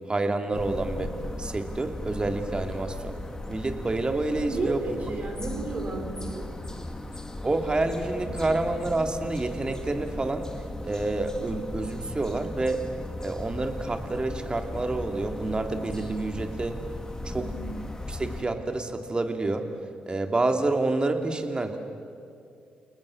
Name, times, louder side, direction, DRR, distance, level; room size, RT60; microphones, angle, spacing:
voice 1, 0.1-3.2 3.5-5.0 7.4-10.5 10.8-12.8 13.2-16.8 17.2-17.5 18.1-19.7 20.1-21.8, right 2 dB, 30° right, 6 dB, 2.7 m, -28 dB
sound 1, 0.5-18.4, left 2 dB, 20° left, 2.3 m, -37 dB
voice 2, 4.5-6.5 17.2-17.7, right 3 dB, 50° right, 1 dB, 4.8 m, -33 dB
29.0 x 19.5 x 7.3 m, 2.4 s
hypercardioid pair, 45°, 3 cm